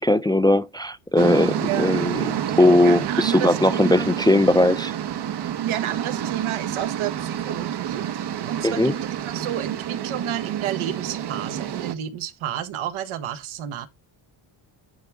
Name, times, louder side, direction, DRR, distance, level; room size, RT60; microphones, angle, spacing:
voice 1, 0.0-4.9 8.6-8.9, left 1 dB, 10° left, 0.3 m, -19 dB
sound 1, 1.2-11.9, right 10 dB, 55° right, 1.0 m, -29 dB
voice 2, 1.6-1.9 2.8-4.1 5.6-8.9 9.2-13.9, right 11 dB, 80° right, 1.4 m, -30 dB
10.5 x 3.5 x 3.6 m
cardioid pair, 100°, 48 cm